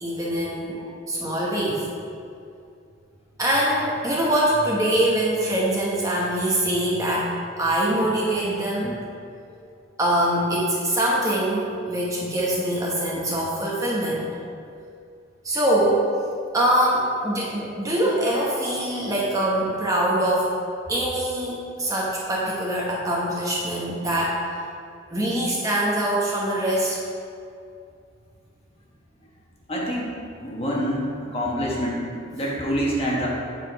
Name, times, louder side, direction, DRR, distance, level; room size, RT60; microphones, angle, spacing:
voice 1, 0.0-1.9 3.4-9.0 10.0-14.2 15.4-16.1 16.5-20.5 20.9-24.4 25.1-27.0, right 1 dB, 15° right, -5 dB, 0.9 m, -23 dB
voice 2, 29.7-30.1 30.4-31.1 31.3-32.0 32.3-33.3, equal, 30° left, -4 dB, 1.2 m, -26 dB
8.1 x 4.9 x 4.5 m, 2.4 s
head